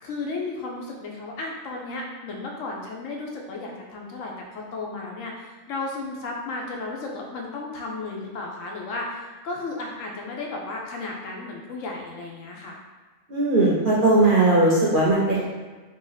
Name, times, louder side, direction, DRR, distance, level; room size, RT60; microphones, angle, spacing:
voice 1, 0.0-12.8, left 3 dB, 70° left, -1 dB, 0.9 m, -34 dB
voice 2, 13.3-15.5, right 2 dB, 50° right, -6 dB, 0.6 m, -19 dB
2.9 x 2.6 x 3.9 m, 1.3 s
omnidirectional pair, 1.4 m